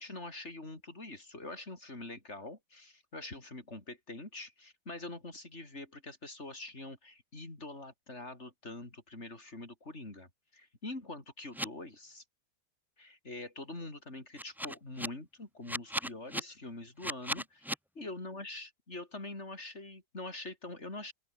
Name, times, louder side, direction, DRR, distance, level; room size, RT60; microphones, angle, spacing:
voice 1, 0.0-12.2 13.0-21.1, left 2 dB, 45° left, 5.0 m, -45 dB
sound 1, 11.5-11.7 14.4-15.1 15.7-16.4 17.0-17.8, equal, ahead, 1.6 m, -35 dB
open air
omnidirectional pair, 1.7 m